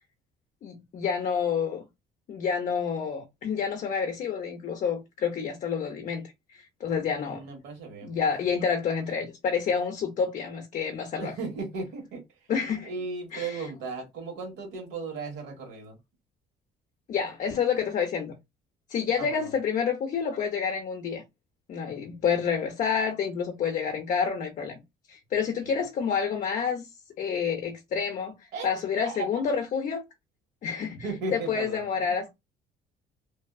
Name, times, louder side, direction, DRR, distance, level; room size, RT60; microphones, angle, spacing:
voice 1, 0.6-1.8 2.3-7.4 8.0-11.3 12.5-12.9 13.3-13.6 17.1-18.3 18.9-21.2 21.7-24.8 25.1-26.9 27.2-28.4 28.6-30.0 30.6-31.1 31.3-32.3, left 6 dB, 50° left, 0.5 m, -28 dB
voice 2, 7.1-8.2 11.2-12.2 12.8-16.0 19.2-19.5 25.6-25.7 28.5-28.7 29.0-29.4 31.0-32.0, right 4 dB, 80° right, 1.3 m, -36 dB
2.6 x 2.3 x 2.2 m
cardioid pair, 110°, 17 cm